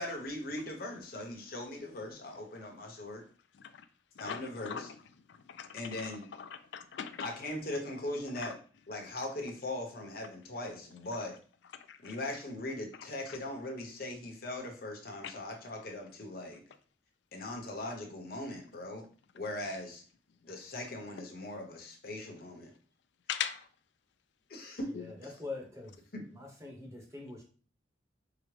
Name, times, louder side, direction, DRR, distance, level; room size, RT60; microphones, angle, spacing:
voice 1, 0.0-3.2 4.2-4.9 5.7-6.2 7.2-8.6 8.9-11.4 12.0-16.6 17.3-19.1 19.3-20.0 20.4-22.7 24.5-24.9 26.1-26.2, left 1 dB, 55° left, 1 dB, 0.9 m, -40 dB
voice 2, 4.2-4.9 5.6-6.1 6.4-7.3 8.4-8.5 11.9-12.1 23.3-23.6, left 8 dB, 70° left, 9 dB, 0.4 m, -39 dB
voice 3, 24.8-26.0 26.3-27.4, left 3 dB, 15° right, 0 dB, 0.9 m, -44 dB
4.8 x 2.0 x 3.2 m, 0.41 s
head